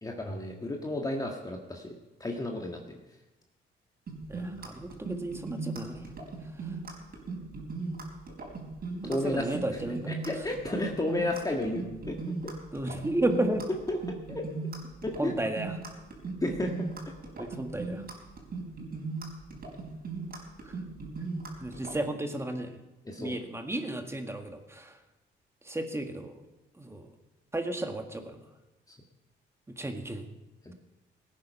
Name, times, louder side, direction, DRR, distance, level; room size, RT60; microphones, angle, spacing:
voice 1, 0.0-1.9 2.2-3.0 9.0-12.2 12.4-12.5 13.9-14.5 15.0-15.3 16.4-16.9 23.0-23.4 28.9-29.0 30.6-30.7, left 1 dB, 20° left, 1 dB, 1.7 m, -33 dB
sound 1, 4.1-22.0, right 4 dB, 50° right, 4.3 m, -38 dB
voice 2, 4.3-6.1 9.0-10.1 12.7-13.7 15.2-15.7 17.4-18.0 20.6-20.7 21.6-22.7 23.2-24.9 25.6-26.4 26.8-27.1 27.5-28.4 29.7-30.2, right 1 dB, 15° right, 5 dB, 1.7 m, -33 dB
17.5 x 9.7 x 5.6 m, 1.1 s
cardioid pair, 90°, 20 cm